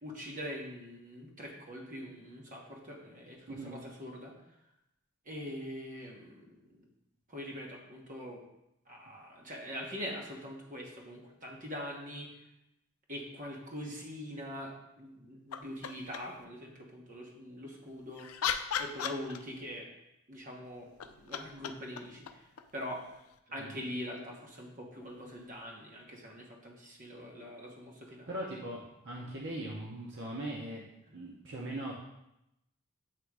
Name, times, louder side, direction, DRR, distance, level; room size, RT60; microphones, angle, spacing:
voice 1, 0.0-4.3 5.2-6.8 7.3-8.4 8.9-12.5 13.1-18.5 18.8-19.9 20.3-22.4 22.7-23.0 23.5-28.3, equal, 35° right, -1 dB, 1.1 m, -43 dB
voice 2, 3.5-3.8 23.6-23.8 28.3-30.8 31.1-31.9, right 1 dB, 55° right, -3 dB, 0.8 m, -40 dB
sound 1, 15.5-16.4 17.9-19.8 20.8-23.4 25.5-25.6, left 8 dB, 70° left, 0.4 m, -38 dB
7.5 x 3.1 x 4.7 m, 0.86 s
head